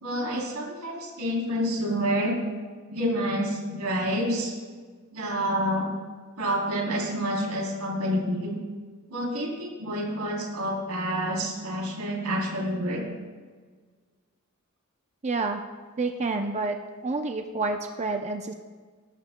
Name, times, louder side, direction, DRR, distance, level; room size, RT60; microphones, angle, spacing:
voice 1, 0.0-2.3 2.9-4.5 5.1-5.9 6.4-8.6 9.1-13.0, equal, 90° right, -2 dB, 3.4 m, -28 dB
voice 2, 15.2-15.6 16.0-16.8 17.0-18.5, right 3 dB, 30° right, 5 dB, 0.6 m, -28 dB
20.0 x 12.0 x 2.2 m, 1.5 s
head